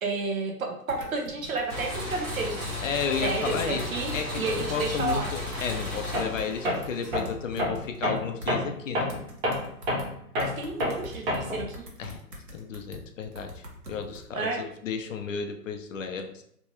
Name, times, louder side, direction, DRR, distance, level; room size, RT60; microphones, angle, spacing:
voice 1, 0.0-2.6 3.2-5.3 10.4-11.8 14.3-14.6, right 3 dB, 60° right, 2 dB, 1.1 m, -31 dB
sound 1, 0.9-1.9 2.6-2.7 3.2-4.4 4.7-8.5 9.1-10.1 10.4-14.3, equal, 90° right, 1.3 m, -44 dB
sound 2, 1.7-7.6, left 2 dB, 10° right, 1.0 m, -34 dB
voice 2, 2.8-9.1 12.0-12.2 12.5-16.4, left 6 dB, 55° left, 6 dB, 0.6 m, -33 dB
Tools, 6.1-6.4 6.6-11.7, left 1 dB, 35° right, 1.0 m, -29 dB
3.4 x 3.0 x 2.9 m, 0.69 s
hypercardioid pair, 140°, 47 cm